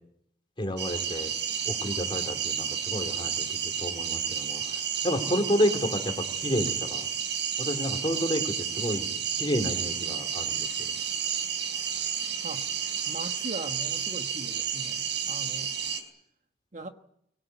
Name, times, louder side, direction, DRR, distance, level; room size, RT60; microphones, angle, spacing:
voice 1, 0.6-1.3 1.6-7.1 7.6-10.9, equal, 25° left, 3.3 m, -30 dB
sound 1, 0.8-16.0, right 8 dB, 70° right, 4.4 m, -31 dB
voice 2, 13.1-15.7 16.7-16.9, right 2 dB, 40° right, 1.3 m, -40 dB
24.0 x 17.5 x 9.4 m
head